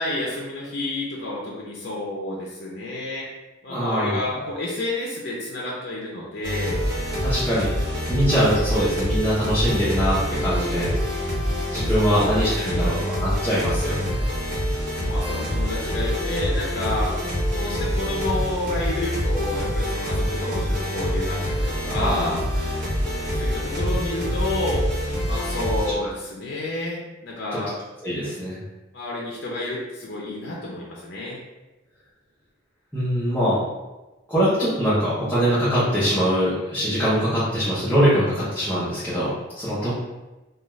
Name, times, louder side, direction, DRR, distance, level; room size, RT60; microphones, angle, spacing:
voice 1, 0.0-3.3 3.6-6.8 11.9-13.1 14.9-22.4 23.2-24.9 25.2-27.8 28.9-31.4 39.8-39.9, left 2 dB, 60° left, -4 dB, 0.5 m, -30 dB
voice 2, 3.7-4.2 7.2-7.7 8.1-10.9 11.7-14.2 21.8-22.4 27.5-27.6 28.0-28.6 32.9-33.6 34.3-39.9, equal, 10° left, -12 dB, 0.8 m, -23 dB
sound 1, 6.4-25.9, equal, 45° right, 1.1 m, -25 dB
2.4 x 2.3 x 3.1 m, 1.1 s
head